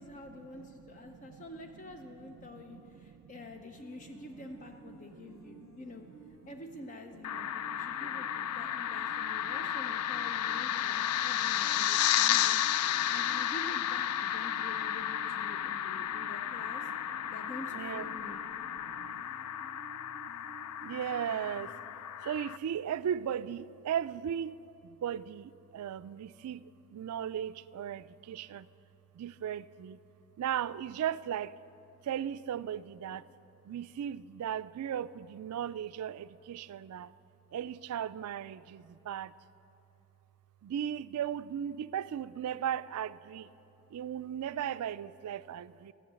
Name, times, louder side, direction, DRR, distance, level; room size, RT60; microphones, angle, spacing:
voice 1, 0.0-6.1 6.5-12.6 13.1-16.9 17.3-18.4, left 2 dB, 35° left, 5 dB, 0.5 m, -48 dB
voice 2, 2.2-3.5 5.1-5.8 7.5-8.5 9.1-9.5 11.9-12.4 12.9-13.1 15.6-15.7 17.2-17.4 17.7-18.0 18.6-19.2 20.8-21.7 22.2-24.6 24.8-28.7 29.1-30.0 30.4-31.6 32.0-33.2 33.6-37.1 37.5-39.3 40.6-43.5 43.9-45.9, right 9 dB, 90° right, 16 dB, 0.3 m, -37 dB
sound 1, 3.8-21.8, right 3 dB, 55° left, 1.2 m, -55 dB
sound 2, 7.2-22.6, left 11 dB, 90° left, 0.3 m, -33 dB
14.5 x 6.3 x 8.2 m, 2.9 s
head